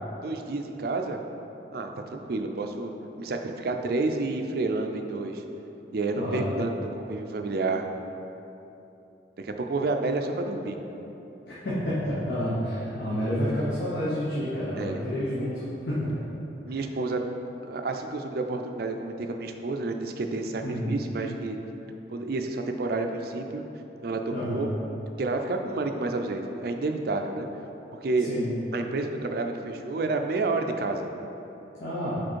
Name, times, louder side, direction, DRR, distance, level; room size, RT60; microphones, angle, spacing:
voice 1, 0.2-1.2 1.7-2.9 3.2-5.4 5.9-7.8 9.4-10.8 14.8-15.0 16.7-17.2 17.6-21.6 22.1-23.6 24.0-24.7 25.2-27.5 28.0-28.3 28.7-31.1, right 3 dB, 55° right, 5 dB, 0.4 m, -29 dB
voice 2, 6.1-6.6 11.5-16.1 20.6-20.9 24.3-24.7 28.2-28.5 31.8-32.2, equal, 65° left, -10 dB, 1.1 m, -29 dB
5.0 x 4.2 x 4.6 m, 3.0 s
head